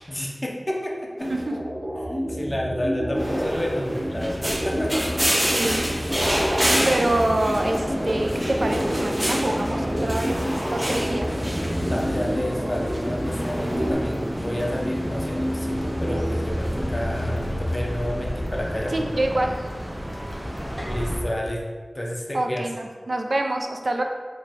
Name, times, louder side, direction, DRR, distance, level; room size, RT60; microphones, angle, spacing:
voice 1, 0.1-1.3 2.1-5.1 11.8-19.2 20.8-21.6 21.9-22.6, equal, 30° left, -1 dB, 0.5 m, -30 dB
sound 1, 1.2-13.9, equal, 5° left, 1.1 m, -29 dB
sound 2, 3.8-21.2, equal, 20° right, 0.6 m, -28 dB
voice 2, 5.4-5.9 6.4-11.3 18.9-19.5 22.3-24.0, right 1 dB, 70° right, 3 dB, 0.3 m, -26 dB
3.1 x 2.2 x 4.0 m, 1.5 s
wide cardioid pair, 70°, 0 cm